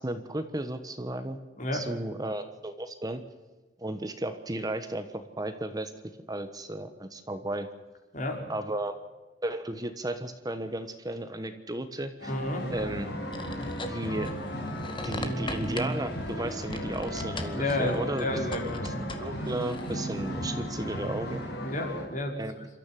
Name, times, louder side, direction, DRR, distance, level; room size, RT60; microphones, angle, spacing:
voice 1, 0.0-1.4 1.7-3.2 3.8-5.9 6.3-7.7 8.5-8.9 9.4-12.4 12.7-13.1 13.9-14.3 15.0-18.3 18.8-21.4 22.4-22.7, right 1 dB, 20° right, 9 dB, 1.2 m, -34 dB
voice 2, 1.6-1.9 8.1-8.5 12.3-12.7 17.5-18.8 21.6-22.4, left 1 dB, 45° left, 2 dB, 5.0 m, -31 dB
sound 1, 12.2-22.1, equal, 65° left, 6.4 m, -35 dB
sound 2, 13.3-20.3, left 2 dB, 30° left, 2.0 m, -41 dB
28.0 x 13.5 x 7.6 m, 1.3 s
head